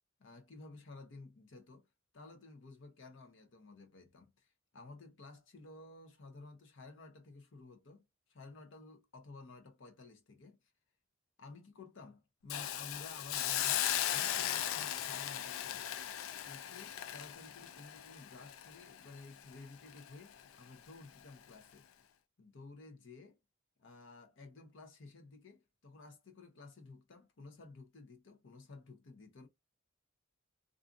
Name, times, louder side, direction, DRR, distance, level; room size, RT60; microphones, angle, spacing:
voice 1, 0.2-1.9 2.1-4.5 4.7-8.0 8.3-10.6 11.4-15.9 16.4-21.9 22.4-23.4 23.8-29.5, left 3 dB, 65° left, 0.7 m, -54 dB
Hiss, 12.5-19.5 19.9-20.1, left 11 dB, 85° left, 0.3 m, -37 dB
2.5 x 2.4 x 2.4 m
head